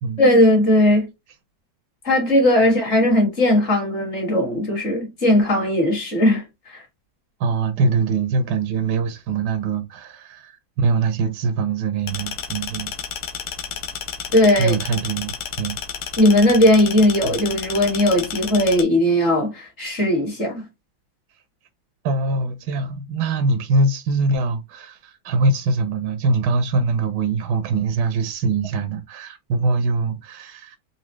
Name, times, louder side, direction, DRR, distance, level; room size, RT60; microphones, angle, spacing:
voice 1, 0.2-1.1 2.0-6.4 6.7-6.8 14.3-14.7 16.2-20.6, left 1 dB, 35° left, 1.7 m, -18 dB
voice 2, 7.4-12.9 14.6-15.8 17.2-17.3 22.0-30.8, right 3 dB, 70° right, 1.1 m, -23 dB
sound 1, 12.1-18.8, left 7 dB, 70° left, 0.9 m, -31 dB
4.0 x 2.7 x 3.0 m
omnidirectional pair, 2.1 m